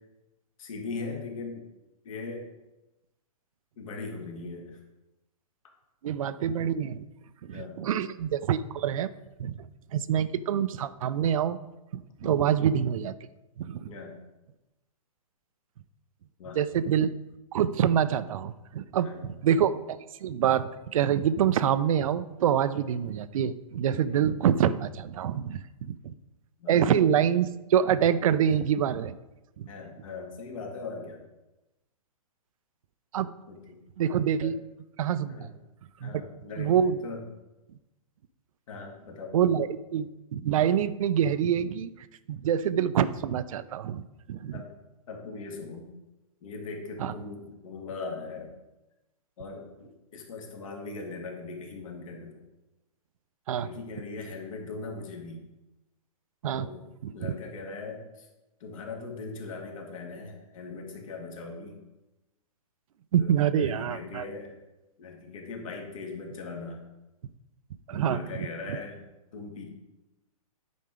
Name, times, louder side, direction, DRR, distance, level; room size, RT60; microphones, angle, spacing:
voice 1, 0.6-1.7 2.0-2.5 3.8-4.8 7.5-7.8 12.2-12.5 13.9-14.2 16.4-16.6 19.0-19.3 24.1-24.3 26.6-26.7 29.7-31.2 33.5-33.8 34.1-34.5 35.3-35.5 36.0-37.2 38.7-39.6 44.5-44.7 45.1-45.9 46.4-48.5 49.4-52.4 53.5-55.4 56.5-56.8 57.1-58.3 58.6-61.8 63.2-64.6 65.0-66.8 67.9-69.0 69.3-69.7, left 3 dB, 60° left, 1 dB, 2.1 m, -40 dB
voice 2, 6.0-7.0 7.4-9.1 9.4-11.6 11.9-13.2 13.6-13.9 16.6-17.1 17.5-26.1 26.7-29.1 29.6-29.7 33.1-33.3 34.0-34.6 35.0-35.5 36.0-36.1 36.6-37.0 39.3-41.9 42.3-44.0 44.3-44.6 47.0-47.1 53.5-53.7 56.4-56.7 57.0-57.3 63.1-64.2 67.9-68.2, right 9 dB, 60° right, 15 dB, 0.5 m, -26 dB
9.4 x 4.4 x 5.0 m, 1.0 s
hypercardioid pair, 145°, 19 cm